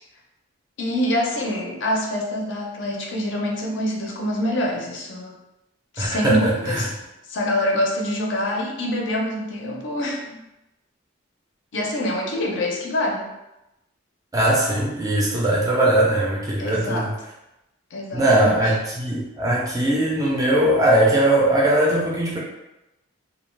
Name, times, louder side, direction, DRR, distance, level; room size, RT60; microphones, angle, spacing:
voice 1, 0.8-5.4 5.9-6.9 7.3-10.4 11.7-13.3 16.6-17.1 17.9-18.7, left 1 dB, 60° left, -1 dB, 0.5 m, -25 dB
voice 2, 6.0-6.9 14.3-17.1 18.1-22.4, right 1 dB, 15° right, -3 dB, 0.4 m, -20 dB
2.3 x 2.2 x 3.2 m, 0.95 s
head